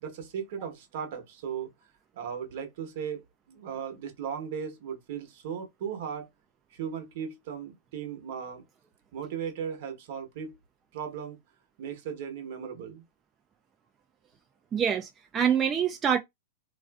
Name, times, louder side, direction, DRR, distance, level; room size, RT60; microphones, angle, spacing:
voice 1, 0.0-1.7 2.1-6.3 6.7-8.6 9.1-10.6 10.9-11.4 11.8-13.0, right 7 dB, 60° right, 0.9 m, -37 dB
voice 2, 14.7-16.2, right 8 dB, 25° right, 0.3 m, -25 dB
2.4 x 2.4 x 2.3 m
hypercardioid pair, 115°, 0 cm